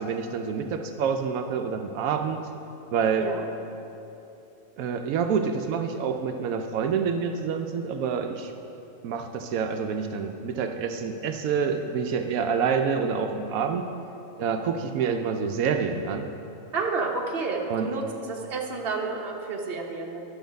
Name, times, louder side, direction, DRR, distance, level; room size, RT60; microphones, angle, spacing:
voice 1, 0.0-2.4 2.9-3.3 4.8-8.5 9.0-13.8 14.4-16.3 17.7-17.9, right 6 dB, 85° right, 6 dB, 1.0 m, -27 dB
voice 2, 16.7-20.2, right 4 dB, 45° right, 0 dB, 1.2 m, -30 dB
11.5 x 7.0 x 5.2 m, 2.8 s
omnidirectional pair, 1.4 m